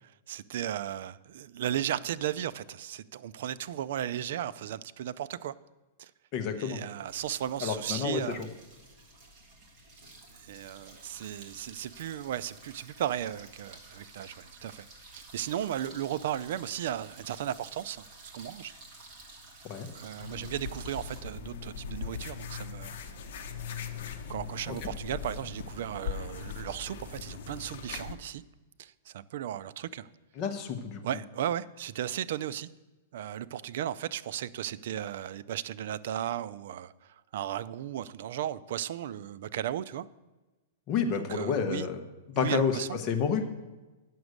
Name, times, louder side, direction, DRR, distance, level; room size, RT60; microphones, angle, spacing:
voice 1, 0.0-5.5 6.0-6.1 6.6-8.5 10.3-14.9 15.2-18.7 19.9-23.2 24.3-28.4 28.8-30.1 31.0-32.7 33.1-40.1 41.2-41.9 42.3-43.0, right 11 dB, 55° right, 0.4 m, -35 dB
voice 2, 6.3-6.8 7.6-8.5 19.6-19.9 24.7-24.9 30.4-31.0 40.9-42.0 42.3-42.8 43.0-43.4, left 6 dB, 25° left, 0.9 m, -30 dB
sound 1, 7.1-21.2, right 2 dB, 25° right, 1.7 m, -52 dB
sound 2, 20.2-28.1, left 6 dB, 55° left, 0.9 m, -40 dB
9.3 x 6.1 x 6.5 m
supercardioid pair, 170°, 0 cm